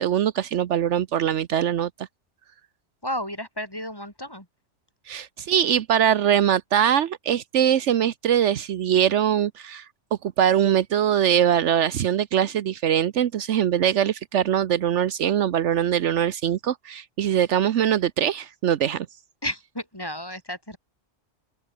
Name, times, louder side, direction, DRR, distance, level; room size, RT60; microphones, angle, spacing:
voice 1, 0.0-1.9 5.1-9.8 10.4-19.1, right 9 dB, 75° right, 1.1 m, -22 dB
voice 2, 3.0-4.5 19.4-20.8, equal, 20° left, 7.3 m, -32 dB
open air
omnidirectional pair, 1.2 m